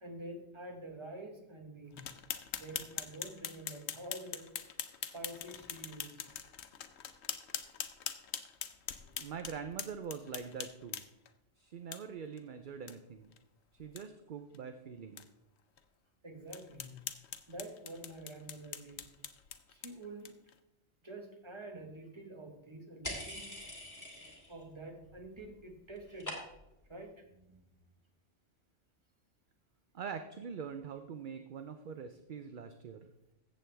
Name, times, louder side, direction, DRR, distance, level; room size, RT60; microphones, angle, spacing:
voice 1, 0.0-2.1 2.5-4.5 5.1-6.2 16.2-17.0 17.5-19.1 19.7-20.4 21.0-23.5 24.5-26.4 26.9-27.8, right 1 dB, 25° right, 3 dB, 1.4 m, -48 dB
sound 1, 2.0-11.3 11.9-12.0 12.4-12.5 12.9-13.0 13.3-13.4 13.8-14.0 14.5-14.6 15.2-15.3 15.8-15.9 16.5-20.5, left 9 dB, 80° left, 1.0 m, -43 dB
voice 2, 9.2-11.0 11.6-13.3 13.8-15.3 29.9-33.1, right 6 dB, 55° right, 7 dB, 0.7 m, -44 dB
sound 2, 23.0-24.6 24.9-25.5 25.7-26.8, left 1 dB, 15° left, 2.1 m, -44 dB
14.0 x 7.8 x 3.4 m, 0.89 s
omnidirectional pair, 1.1 m